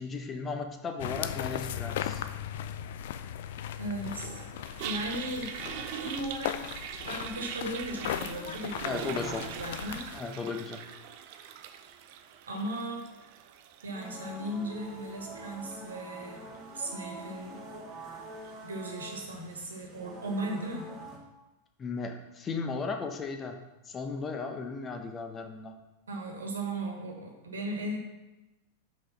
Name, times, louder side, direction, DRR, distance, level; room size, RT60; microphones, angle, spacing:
voice 1, 0.0-2.2 8.8-9.4 10.1-10.8 21.8-23.6 23.9-25.7, left 4 dB, 20° left, 5 dB, 0.9 m, -35 dB
sound 1, 1.0-10.2, left 10 dB, 55° left, 0.4 m, -37 dB
voice 2, 3.8-4.4 4.8-6.7 7.0-10.1 12.5-13.1 13.8-16.5 16.7-17.6 18.6-20.9 26.1-28.0, right 1 dB, 70° right, 1 dB, 1.5 m, -37 dB
Toilet flush, 4.0-19.2, right 9 dB, 50° right, 0.5 m, -43 dB
sound 2, 13.9-21.2, right 1 dB, 25° right, 2.0 m, -45 dB
5.8 x 5.1 x 5.7 m, 1.0 s
figure-of-eight pair, 90°, 0 cm